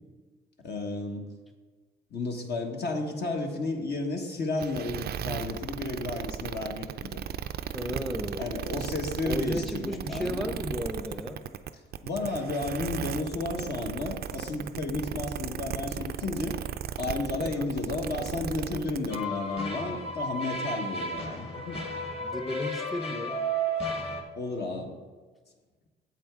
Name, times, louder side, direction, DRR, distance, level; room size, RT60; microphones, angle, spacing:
voice 1, 0.6-1.3 2.1-7.2 8.4-10.5 12.0-16.6 17.0-21.8 24.3-25.0, left 3 dB, 55° left, 2 dB, 1.4 m, -32 dB
sound 1, 4.6-19.2, right 10 dB, 55° right, 0.4 m, -35 dB
voice 2, 7.7-8.5 9.2-11.4 17.4-17.8 22.2-23.4, left 1 dB, ahead, 5 dB, 0.7 m, -34 dB
sound 2, 19.1-24.2, right 1 dB, 30° left, 1.4 m, -33 dB
8.9 x 7.6 x 3.6 m, 1.4 s
cardioid pair, 90°, 20 cm